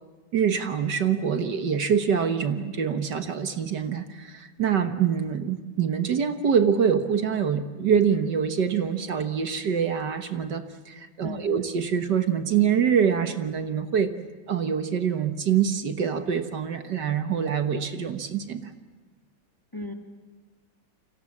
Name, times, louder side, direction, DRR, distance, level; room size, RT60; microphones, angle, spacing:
voice 1, 0.3-14.1 14.5-18.8, right 7 dB, 60° right, 8 dB, 1.8 m, -25 dB
voice 2, 11.2-11.7 19.7-19.9, left 2 dB, 10° left, 4 dB, 1.8 m, -36 dB
29.5 x 25.5 x 7.3 m, 1.3 s
omnidirectional pair, 2.1 m